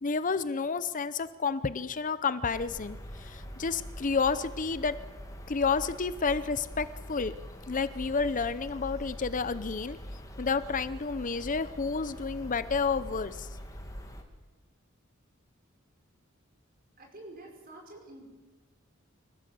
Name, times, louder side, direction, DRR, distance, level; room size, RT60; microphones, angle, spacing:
voice 1, 0.0-5.0 5.5-7.3 7.7-10.0 10.4-13.5, left 5 dB, 40° left, 14 dB, 0.7 m, -30 dB
sound 1, 2.5-14.2, equal, 15° left, 2.4 m, -43 dB
voice 2, 17.0-18.3, right 2 dB, 45° right, 1 dB, 5.6 m, -48 dB
25.5 x 15.0 x 7.8 m, 1.3 s
head